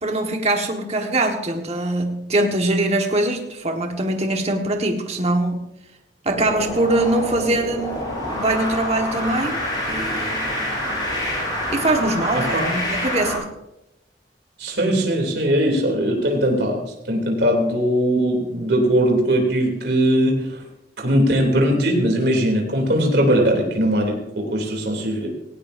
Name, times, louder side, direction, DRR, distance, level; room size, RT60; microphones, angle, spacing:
voice 1, 0.0-5.6 6.2-9.6 9.9-10.6 11.7-13.5, right 2 dB, 35° right, 3 dB, 1.5 m, -22 dB
sound 1, 6.3-13.4, left 1 dB, 25° left, 6.7 m, -27 dB
voice 2, 12.3-12.7 14.6-20.6 21.0-25.3, equal, 65° right, 1 dB, 3.1 m, -20 dB
17.5 x 17.0 x 2.7 m, 0.86 s
head